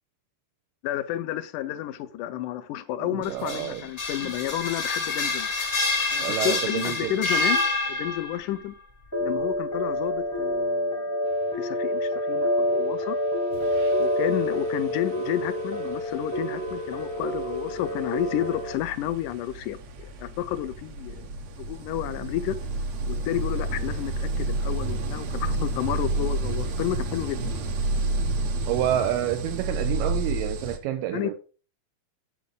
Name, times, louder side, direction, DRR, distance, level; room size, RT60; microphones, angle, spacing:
voice 1, 0.8-5.5 6.1-7.6 7.9-8.7 9.2-11.1 11.5-13.2 14.0-21.3 21.6-22.6 23.1-27.5 31.1-31.3, left 13 dB, 80° left, 2.0 m, -31 dB
voice 2, 3.0-3.8 4.2-4.3 6.2-7.1 28.7-31.3, right 12 dB, 85° right, 2.4 m, -28 dB
sound 1, 3.2-8.4, left 3 dB, 50° left, 0.7 m, -27 dB
sound 2, 9.1-18.7, left 1 dB, 15° left, 0.6 m, -27 dB
sound 3, 13.0-13.2 13.5-30.8, right 2 dB, 65° right, 1.9 m, -31 dB
8.5 x 7.7 x 3.6 m
omnidirectional pair, 3.9 m